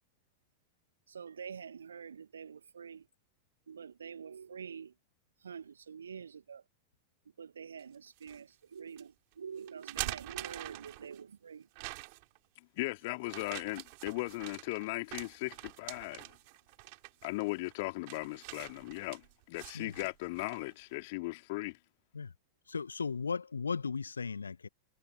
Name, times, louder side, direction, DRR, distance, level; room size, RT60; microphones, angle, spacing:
voice 1, 1.1-3.1 3.7-4.9 5.4-6.6 7.4-11.7, right 7 dB, 70° right, 2.5 m, -46 dB
sound 1, 7.8-8.4 9.0-9.1 9.7-11.2 11.8-12.4 13.2-20.7, right 33 dB, 45° right, 5.1 m, -45 dB
voice 2, 12.6-16.3 17.2-21.8, left 23 dB, 50° left, 3.2 m, -38 dB
voice 3, 22.7-24.7, left 5 dB, 75° left, 1.8 m, -36 dB
figure-of-eight pair, 90°, 0 cm